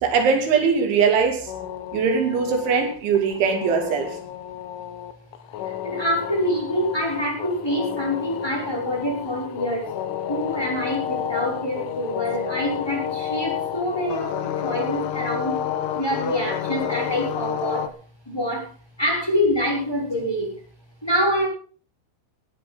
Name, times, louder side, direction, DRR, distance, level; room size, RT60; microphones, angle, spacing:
voice 1, 0.0-1.5 1.9-4.2, right 6 dB, 75° right, 5 dB, 4.9 m, -21 dB
sound 1, 1.5-17.9, left 10 dB, 85° left, 3.8 m, -30 dB
voice 2, 5.6-9.9 10.3-15.6 15.9-17.9 18.2-18.7 19.0-20.5 21.0-21.5, equal, 5° left, 0 dB, 6.9 m, -26 dB
18.5 x 15.0 x 3.9 m, 0.41 s
omnidirectional pair, 5.5 m